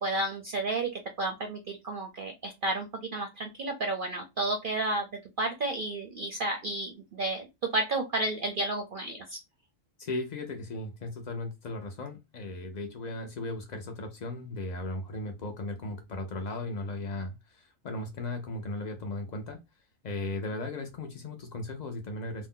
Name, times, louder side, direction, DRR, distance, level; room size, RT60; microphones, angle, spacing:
voice 1, 0.0-5.1 5.4-9.4, right 2 dB, 60° right, 3 dB, 0.5 m, -32 dB
voice 2, 10.0-19.6 20.0-22.5, left 2 dB, 85° left, 4 dB, 0.3 m, -36 dB
2.6 x 2.1 x 3.6 m, 0.23 s
omnidirectional pair, 1.4 m